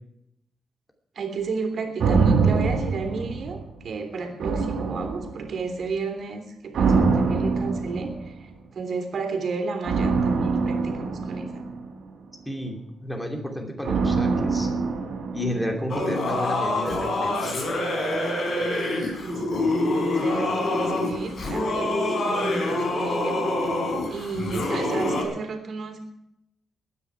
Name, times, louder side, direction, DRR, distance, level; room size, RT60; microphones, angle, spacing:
voice 1, 1.1-11.7 19.2-23.7 24.1-26.0, right 4 dB, 60° right, 4 dB, 3.2 m, -32 dB
sound 1, 2.0-3.9 4.4-5.7 6.7-8.5 9.8-12.2 13.8-16.0 16.3-16.4, right 4 dB, 85° right, 3.2 m, -24 dB
voice 2, 12.5-14.7 15.3-17.6, left 1 dB, 5° left, 2 dB, 2.7 m, -31 dB
Singing / Musical instrument, 15.9-25.2, left 1 dB, 60° left, 4.7 m, -26 dB
22.5 x 9.9 x 4.9 m, 0.80 s
wide cardioid pair, 130°, 0 cm